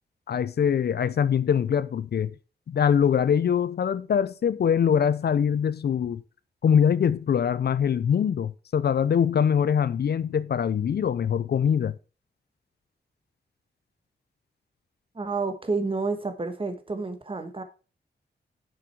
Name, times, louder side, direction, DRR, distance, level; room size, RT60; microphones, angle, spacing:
voice 1, 0.3-2.3 2.7-6.2 6.6-11.9, left 8 dB, 65° left, 0.5 m, -23 dB
voice 2, 15.1-17.6, right 3 dB, 30° right, 1.3 m, -29 dB
7.3 x 6.3 x 4.5 m
wide cardioid pair, 95°, 18 cm